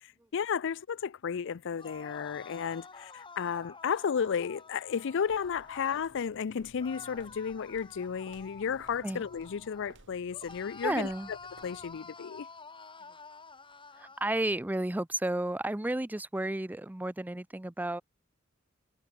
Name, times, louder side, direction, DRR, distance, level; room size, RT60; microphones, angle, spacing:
voice 1, 0.0-11.4 11.6-12.5, left 7 dB, 60° left, 0.4 m, -33 dB
sound 1, 1.7-6.1 6.8-10.0 10.3-14.3, left 4 dB, 25° left, 5.3 m, -50 dB
sound 2, 5.3-12.1, right 2 dB, 65° right, 2.7 m, -57 dB
voice 2, 10.8-11.3 14.0-18.0, right 1 dB, 10° right, 0.5 m, -32 dB
head